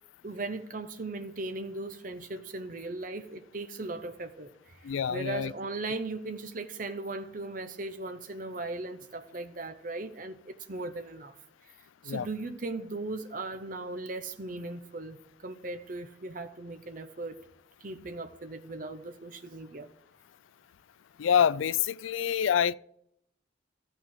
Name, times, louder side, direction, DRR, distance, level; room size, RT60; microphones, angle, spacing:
voice 1, 0.2-11.4 12.0-17.4 17.8-19.9, right 2 dB, 45° right, 0.7 m, -38 dB
voice 2, 4.8-5.5 12.1-12.3 21.2-22.7, left 8 dB, 85° left, 0.3 m, -26 dB
13.5 x 4.5 x 7.7 m
head